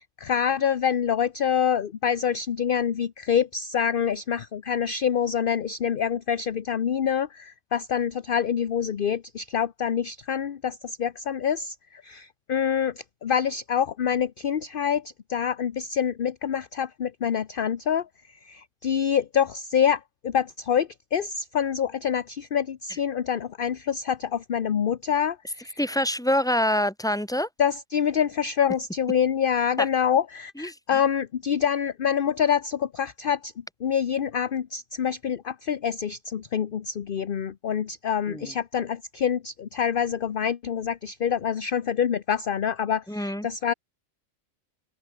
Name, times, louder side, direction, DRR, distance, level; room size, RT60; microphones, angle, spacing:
voice 1, 0.0-25.8 27.6-43.7, left 8 dB, 45° left, 0.9 m, -26 dB
voice 2, 25.8-27.5 29.8-29.9 30.6-30.8 38.3-38.5 43.1-43.5, left 1 dB, 5° left, 2.5 m, -25 dB
omnidirectional pair, 1.4 m